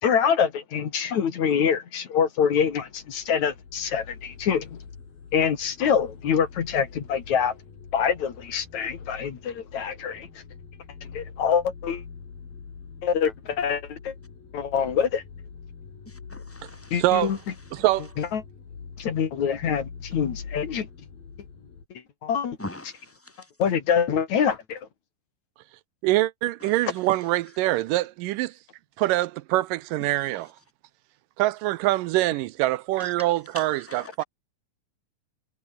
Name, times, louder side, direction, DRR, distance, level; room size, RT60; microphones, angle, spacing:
voice 1, 0.0-4.8 5.3-7.5 7.9-10.3 11.1-12.0 13.0-14.1 14.5-15.2 16.9-17.4 18.2-18.4 19.0-20.9 22.2-22.6 23.6-24.9, left 7 dB, 55° left, 3.4 m, -25 dB
sound 1, 2.7-21.9, left 5 dB, 85° left, 6.9 m, -44 dB
voice 2, 16.3-16.9 22.6-23.0 33.5-33.6 33.9-34.2, left 1 dB, 5° left, 1.9 m, -39 dB
voice 3, 17.0-17.3 17.7-18.1 26.0-28.6 29.0-30.5 31.4-34.2, right 17 dB, 80° right, 2.2 m, -24 dB
omnidirectional pair, 4.0 m